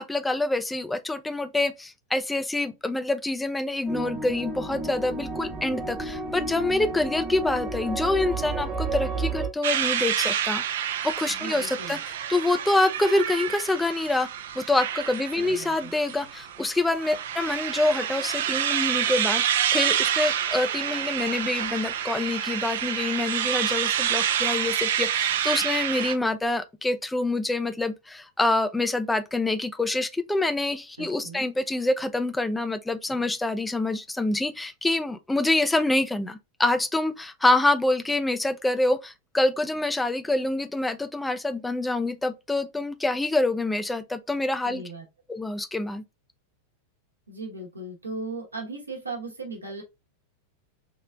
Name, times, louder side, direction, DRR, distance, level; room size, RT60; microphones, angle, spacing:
voice 1, 0.0-10.6 11.0-12.0 12.3-14.3 14.6-19.4 19.7-44.8 45.3-46.0, left 2 dB, 5° left, 0.4 m, -26 dB
sound 1, 3.9-9.5, right 3 dB, 25° right, 0.7 m, -31 dB
sound 2, 9.6-26.1, right 10 dB, 60° right, 0.4 m, -28 dB
voice 2, 11.3-12.0 15.4-15.9 31.0-31.4 44.6-45.1 47.3-49.8, right 3 dB, 80° right, 1.0 m, -37 dB
3.7 x 3.1 x 2.3 m
figure-of-eight pair, 90°, 0 cm